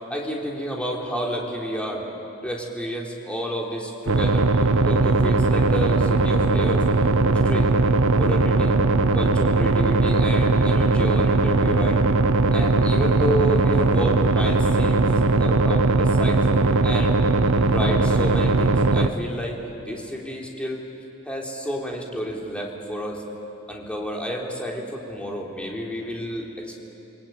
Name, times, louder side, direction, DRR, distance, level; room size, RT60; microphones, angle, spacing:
voice 1, 0.1-2.0 2.4-6.8 7.3-7.7 8.1-8.8 9.1-12.1 12.5-15.1 15.4-16.4 16.8-17.3 17.7-20.8 21.3-23.2 23.7-26.8, equal, 5° left, -2 dB, 3.6 m, -30 dB
sound 1, 4.1-19.1, right 3 dB, 65° right, 1.0 m, -19 dB
29.0 x 21.0 x 9.4 m, 2.9 s
head